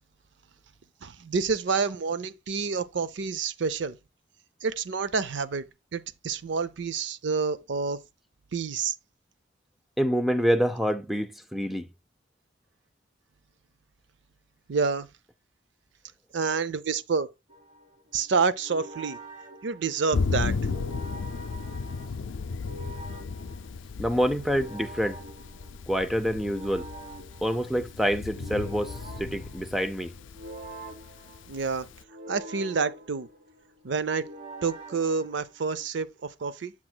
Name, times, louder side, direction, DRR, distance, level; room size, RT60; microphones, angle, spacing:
voice 1, 1.0-4.0 4.6-5.6 5.9-8.0 8.5-8.9 14.7-15.1 16.3-17.3 18.1-19.2 19.6-20.5 31.5-31.9 32.3-33.3 33.8-34.3 34.6-36.7, right 5 dB, 70° right, 0.5 m, -28 dB
voice 2, 10.0-11.9 24.0-25.2 25.9-26.9 27.4-30.1, equal, ahead, 0.5 m, -27 dB
sound 1, 17.5-35.9, right 1 dB, 35° right, 1.8 m, -46 dB
Thunder, 20.1-32.0, left 4 dB, 80° left, 0.4 m, -35 dB
7.8 x 7.2 x 2.2 m
head